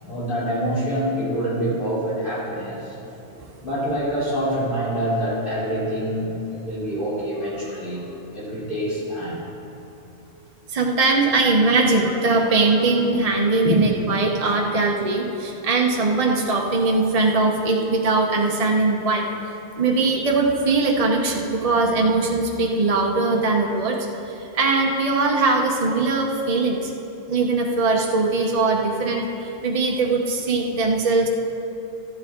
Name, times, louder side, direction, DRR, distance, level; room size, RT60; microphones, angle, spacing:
voice 1, 0.0-2.9 3.6-8.0 8.3-9.4 12.6-12.7 13.6-13.8, equal, 45° left, -8 dB, 3.4 m, -26 dB
voice 2, 10.7-19.2 19.8-26.9 27.3-31.3, right 3 dB, 35° right, 0 dB, 0.8 m, -21 dB
13.5 x 10.0 x 3.7 m, 2.9 s
omnidirectional pair, 1.2 m